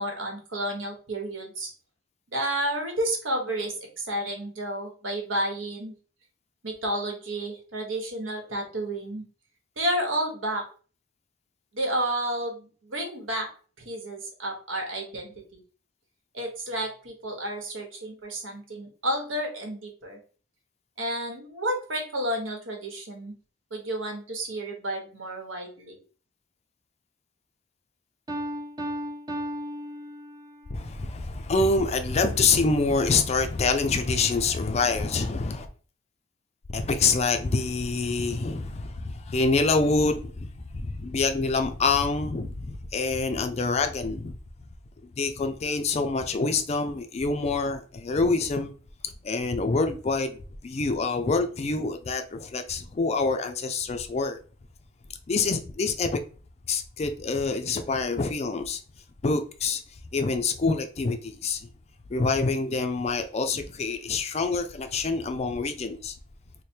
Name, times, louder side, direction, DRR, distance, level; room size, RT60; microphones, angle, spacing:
voice 1, 0.0-1.7 2.3-5.9 6.6-9.2 9.8-10.6 11.7-13.5 13.8-15.3 16.3-20.2 21.0-23.3 23.7-26.0, right 1 dB, 80° right, 1.1 m, -31 dB
Piano, 28.3-30.7, equal, 20° right, 0.5 m, -35 dB
voice 2, 30.7-35.7 36.7-44.4 45.2-48.7 49.2-50.4 50.6-54.4 55.3-56.2 56.7-58.8 59.2-59.8 60.1-61.7 62.1-66.1, left 3 dB, 35° left, 0.4 m, -26 dB
3.3 x 2.1 x 4.3 m
head